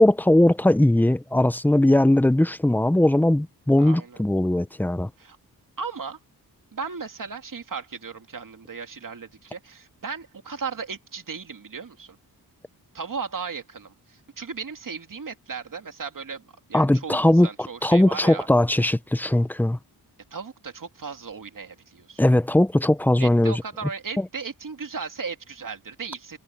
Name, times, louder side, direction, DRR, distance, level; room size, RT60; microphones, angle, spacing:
voice 1, 0.0-5.1 16.7-17.5 17.8-19.8 22.2-23.6 24.2-24.3, left 1 dB, 5° left, 0.6 m, -19 dB
voice 2, 3.8-4.2 5.2-5.4 5.8-6.2 6.7-12.2 12.9-16.4 16.7-18.5 20.3-22.2 23.2-26.4, right 5 dB, 55° right, 2.5 m, -36 dB
wide cardioid pair, 110°, 39 cm